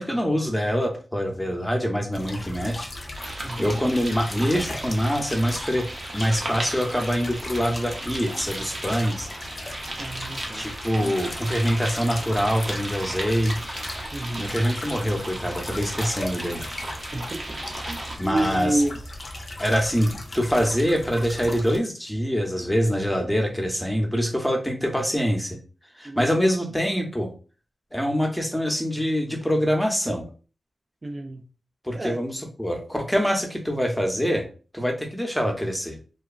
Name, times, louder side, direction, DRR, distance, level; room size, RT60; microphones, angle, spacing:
voice 1, 0.0-2.9 3.6-5.9 6.1-9.3 10.5-13.6 14.3-16.6 18.2-18.8 19.6-25.6 26.0-27.3 27.9-30.3 31.8-34.4 34.7-36.0, equal, 5° left, 2 dB, 0.7 m, -24 dB
sound 1, 2.1-21.8, left 1 dB, 50° left, 0.4 m, -37 dB
sound 2, 3.1-18.2, right 2 dB, 60° right, 0.7 m, -36 dB
voice 2, 3.4-3.8 10.0-10.7 11.0-11.3 14.1-14.6 17.1-17.6 17.9-18.0 18.3-19.0 26.0-26.5 31.0-31.5 32.0-32.2, right 1 dB, 45° right, 4 dB, 0.3 m, -29 dB
2.9 x 2.2 x 2.4 m, 0.37 s
wide cardioid pair, 70°, 0 cm